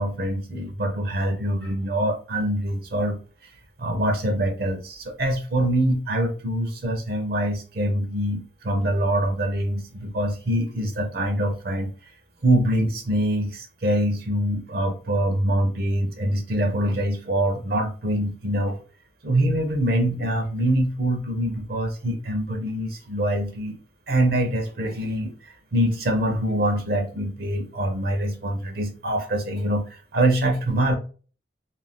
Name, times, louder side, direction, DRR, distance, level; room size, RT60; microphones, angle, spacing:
voice 1, 0.0-3.2 3.8-11.9 12.4-18.8 19.2-23.8 24.1-30.9, right 1 dB, 60° right, 4 dB, 0.6 m, -24 dB
2.5 x 2.1 x 3.3 m, 0.37 s
head